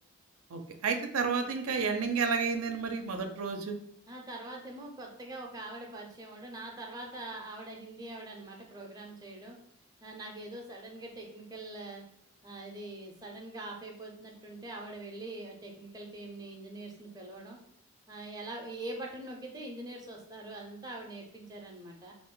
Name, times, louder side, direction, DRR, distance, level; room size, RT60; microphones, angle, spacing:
voice 1, 0.5-3.8, right 5 dB, 80° right, 6 dB, 0.5 m, -31 dB
voice 2, 4.1-9.6 10.0-12.0 12.4-17.6 18.1-22.1, right 2 dB, 15° right, 0 dB, 0.5 m, -43 dB
3.4 x 2.5 x 3.7 m, 0.67 s
head